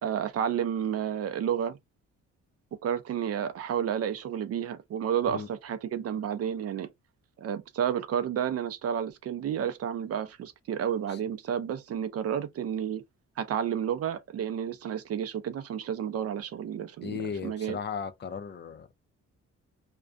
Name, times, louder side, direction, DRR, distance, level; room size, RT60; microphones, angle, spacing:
voice 1, 0.0-1.8 2.8-6.9 7.4-13.0 13.4-17.2 17.4-17.8, right 9 dB, 55° right, 0.5 m, -31 dB
voice 2, 17.0-18.9, left 6 dB, 35° left, 0.4 m, -36 dB
2.4 x 2.2 x 2.4 m
cardioid pair, 90°, 30 cm